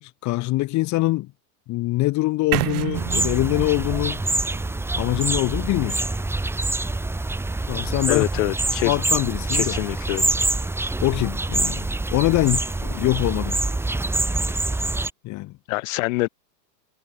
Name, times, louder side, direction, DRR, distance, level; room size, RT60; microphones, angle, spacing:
voice 1, 0.0-1.3 1.7-4.2 5.0-6.0 7.7-8.3 8.8-9.8 11.0-11.8 12.1-13.6 15.2-15.5, left 19 dB, 35° left, 2.5 m, -23 dB
sound 1, 2.5-6.5, right 18 dB, 60° right, 1.8 m, -31 dB
sound 2, 2.9-15.1, right 2 dB, 5° right, 2.1 m, -25 dB
voice 2, 8.1-8.9 9.5-10.3 15.7-16.3, left 24 dB, 50° left, 2.4 m, -25 dB
supercardioid pair, 140°, 50 cm